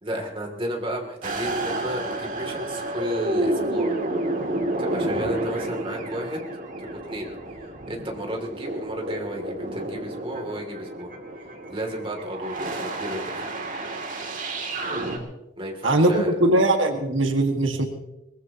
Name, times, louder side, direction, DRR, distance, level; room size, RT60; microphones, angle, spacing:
voice 1, 0.0-3.9 4.8-6.4 6.8-7.3 7.9-11.1 11.7-13.4 15.6-16.3, equal, 30° right, 1 dB, 2.9 m, -32 dB
sound 1, 1.2-15.2, right 1 dB, 45° right, 2.8 m, -30 dB
voice 2, 15.8-17.8, right 1 dB, 85° right, 4 dB, 1.9 m, -20 dB
23.0 x 20.5 x 3.0 m, 0.91 s
head